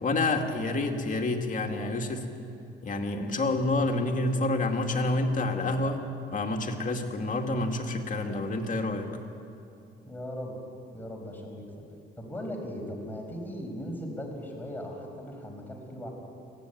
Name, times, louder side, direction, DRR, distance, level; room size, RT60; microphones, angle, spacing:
voice 1, 0.0-2.3 2.8-6.0 6.3-9.1, left 2 dB, 40° left, 3 dB, 2.5 m, -28 dB
voice 2, 10.1-10.6 10.9-11.6 12.2-16.1, equal, 10° left, 1 dB, 5.2 m, -38 dB
21.0 x 16.0 x 9.3 m, 2.6 s
cardioid pair, 90°, 20 cm